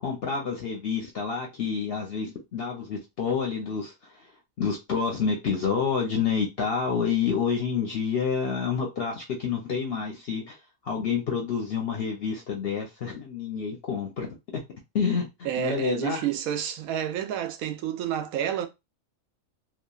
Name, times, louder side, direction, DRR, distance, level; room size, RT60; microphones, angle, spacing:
voice 1, 0.0-4.3 4.6-10.6 10.8-14.6 14.9-15.3 15.6-16.3, left 6 dB, 60° left, 0.7 m, -28 dB
voice 2, 15.4-18.7, right 10 dB, 85° right, 1.0 m, -29 dB
2.9 x 2.2 x 2.3 m
omnidirectional pair, 1.4 m